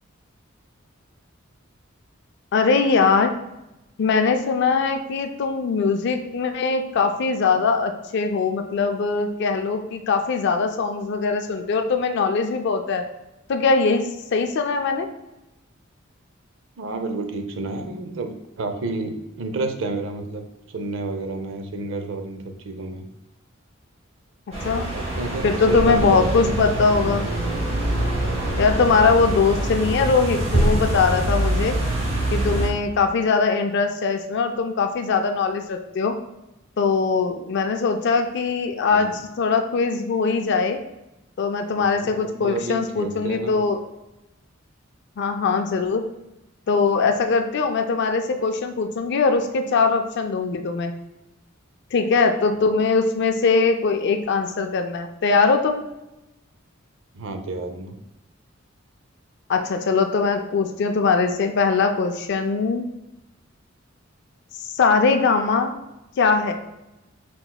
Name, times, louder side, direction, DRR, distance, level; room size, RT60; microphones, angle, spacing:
voice 1, 2.5-3.3 4.0-13.0 13.5-15.1 24.6-24.9 25.4-27.3 28.6-31.8 32.3-36.2 36.8-40.8 41.4-43.8 45.2-46.0 46.7-50.9 51.9-55.8 59.5-62.8 64.8-65.8 66.2-66.5, left 4 dB, 55° left, 6 dB, 0.4 m, -21 dB
voice 2, 16.8-18.3 18.6-20.4 20.7-23.0 24.9-26.3 38.9-39.2 41.7-43.6 57.1-58.0, right 2 dB, 65° right, 6 dB, 0.5 m, -30 dB
sound 1, 24.5-32.7, right 1 dB, 30° right, 0.8 m, -24 dB
4.4 x 4.0 x 2.2 m, 0.95 s
head